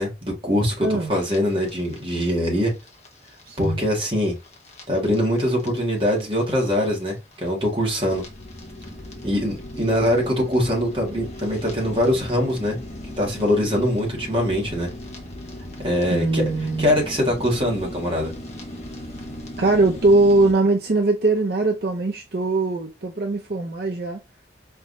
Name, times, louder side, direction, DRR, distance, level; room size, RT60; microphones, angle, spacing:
voice 1, 0.0-2.7 3.6-4.3 4.9-8.2 9.2-12.8 13.2-14.9 15.8-16.4 16.8-18.3, equal, 30° right, 1.7 m, -23 dB
voice 2, 0.8-1.1 3.5-3.8 16.1-16.9 19.6-24.2, right 2 dB, 60° right, 0.6 m, -21 dB
sound 1, 1.2-20.5, left 1 dB, 35° left, 1.0 m, -38 dB
4.5 x 3.5 x 2.6 m
head